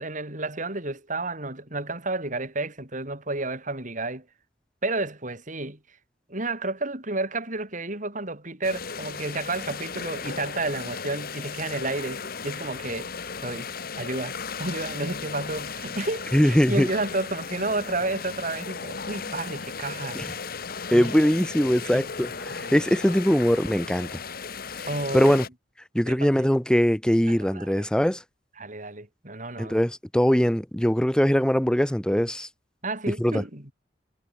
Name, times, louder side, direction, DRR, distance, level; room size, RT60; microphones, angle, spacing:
voice 1, 0.0-4.2 4.8-5.8 6.3-13.1 13.4-13.7 14.0-20.2 20.9-21.1 21.9-22.0 22.6-22.8 24.8-25.4 26.1-26.3 27.3-27.9 28.6-29.8 32.8-33.7, right 2 dB, 45° right, 6.0 m, -31 dB
sound 1, 8.6-25.5, left 5 dB, 55° left, 1.6 m, -36 dB
voice 2, 16.3-16.9 20.1-20.3 20.9-24.2 25.1-25.4 25.9-28.2 29.6-32.5 33.1-33.4, equal, 5° left, 0.8 m, -22 dB
head